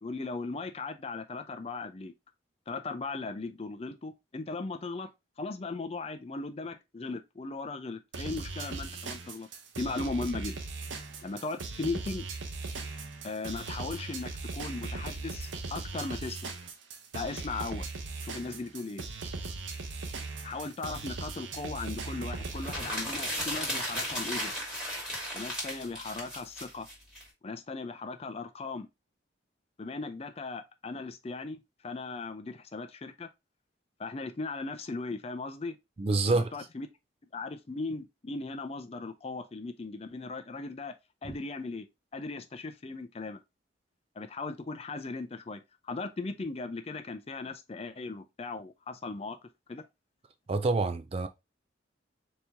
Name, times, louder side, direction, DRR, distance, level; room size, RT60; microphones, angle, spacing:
voice 1, 0.0-2.1 2.7-5.1 5.4-9.5 9.8-10.6 11.2-12.3 13.2-16.5 17.1-17.9 18.2-19.0 20.4-24.5 25.3-26.9 27.4-28.9 29.8-33.3 34.0-35.8 36.3-36.9 37.3-40.9 41.2-41.9 42.1-43.4 44.2-49.4 49.7-49.9, left 3 dB, 30° left, 0.5 m, -38 dB
sound 1, 8.1-22.9, right 3 dB, 85° right, 0.8 m, -39 dB
sound 2, 22.5-27.2, equal, 5° right, 1.5 m, -35 dB
voice 2, 36.0-36.5 41.2-41.4 50.5-51.3, right 3 dB, 30° right, 0.4 m, -27 dB
4.2 x 2.9 x 3.4 m
head